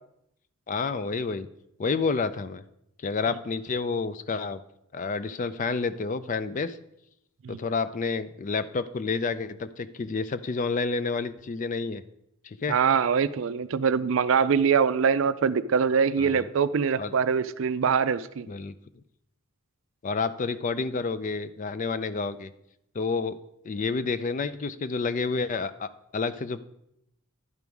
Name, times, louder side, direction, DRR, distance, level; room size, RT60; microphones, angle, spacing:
voice 1, 0.7-1.5 1.8-2.6 3.0-4.6 4.9-6.8 7.5-12.0 12.4-12.8 16.2-16.4 17.0-17.1 18.5-18.7 20.0-22.5 22.9-23.4 23.6-26.6, left 4 dB, 35° left, 14 dB, 0.3 m, -29 dB
voice 2, 12.7-18.5, right 6 dB, 60° right, 14 dB, 0.4 m, -23 dB
11.0 x 5.3 x 4.6 m, 0.80 s
head